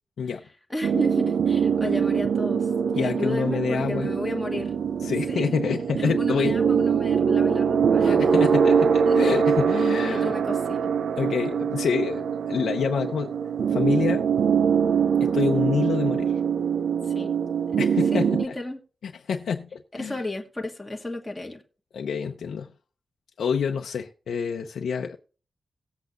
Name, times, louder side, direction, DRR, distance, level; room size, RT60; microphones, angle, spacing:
voice 1, 0.7-4.7 5.3-5.5 6.0-8.4 9.1-9.2 10.1-10.9 17.0-17.3 17.7-17.8 18.1-18.8 19.9-21.6, left 2 dB, 5° left, 1.3 m, -34 dB
sound 1, 0.8-18.4, right 7 dB, 75° right, 0.5 m, -23 dB
voice 2, 2.9-4.1 5.0-6.6 8.0-10.3 11.2-13.3 13.7-14.2 15.2-16.3 17.8-18.5 19.2-20.2 21.9-22.7 23.4-25.2, left 6 dB, 90° left, 0.7 m, -27 dB
19.0 x 8.1 x 2.5 m
wide cardioid pair, 175°, 0 cm